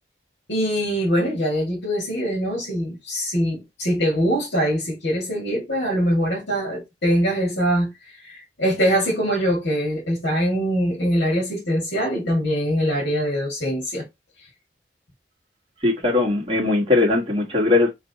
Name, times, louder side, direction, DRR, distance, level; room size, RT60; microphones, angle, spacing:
voice 1, 0.5-7.9 8.2-14.1, equal, 75° left, 2.1 m, -23 dB
voice 2, 15.8-17.9, left 2 dB, 30° right, 1.5 m, -19 dB
3.9 x 3.3 x 4.0 m
head